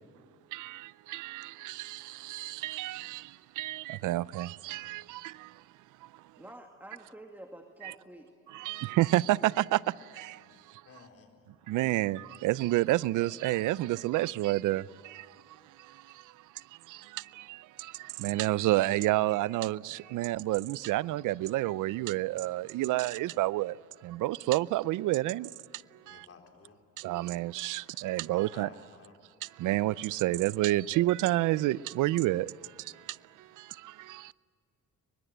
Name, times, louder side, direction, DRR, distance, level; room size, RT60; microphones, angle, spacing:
voice 1, 0.5-3.3 3.6-5.5 7.8-7.9 8.5-9.8 10.2-10.4 11.7-15.2 16.9-23.8 24.0-25.5 26.1-26.2 27.0-28.7 29.6-32.5 33.8-34.3, right 16 dB, 85° right, 0.6 m, -29 dB
voice 2, 6.4-8.3, right 1 dB, 5° right, 2.1 m, -49 dB
voice 3, 10.5-11.6 26.0-26.8 28.2-29.1, left 5 dB, 50° left, 4.4 m, -55 dB
24.0 x 21.5 x 8.0 m
cardioid pair, 90°, 30 cm